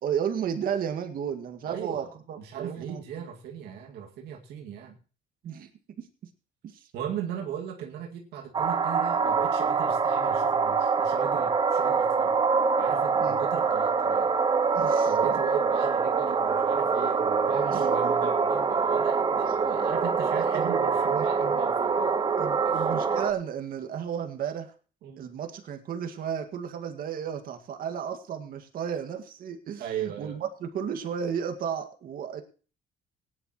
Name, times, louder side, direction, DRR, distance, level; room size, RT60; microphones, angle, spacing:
voice 1, 0.0-3.3 5.4-5.7 6.6-6.9 13.2-13.4 14.7-15.1 17.7-18.1 19.4-19.8 20.5-20.8 21.1-21.6 22.4-24.7 25.2-32.4, right 8 dB, 60° right, 6 dB, 2.0 m, -33 dB
voice 2, 1.7-2.1 2.4-5.0 6.9-12.4 12.8-14.4 15.1-22.2 25.0-25.3 29.8-30.4, right 9 dB, 80° right, 1 dB, 2.2 m, -37 dB
sound 1, 8.5-23.3, right 5 dB, 25° right, 0.9 m, -25 dB
18.5 x 10.5 x 3.1 m, 0.37 s
cardioid pair, 110°, 17 cm